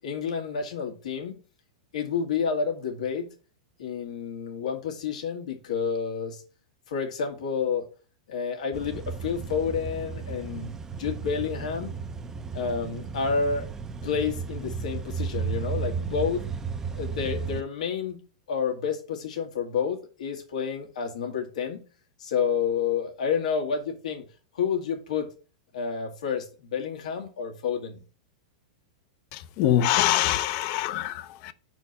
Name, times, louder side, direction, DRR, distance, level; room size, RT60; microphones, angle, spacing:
voice 1, 0.0-1.4 1.9-3.3 3.8-6.4 6.9-7.9 8.3-11.9 12.5-13.7 14.0-16.5 16.9-18.2 18.5-21.8 22.2-24.2 24.5-25.3 25.7-28.0, left 6 dB, 85° left, 1.9 m, -29 dB
sound 1, 8.7-17.6, right 5 dB, 15° right, 0.4 m, -34 dB
voice 2, 29.3-31.5, left 12 dB, 45° left, 0.6 m, -24 dB
5.4 x 4.5 x 5.8 m
supercardioid pair, 150°, 4 cm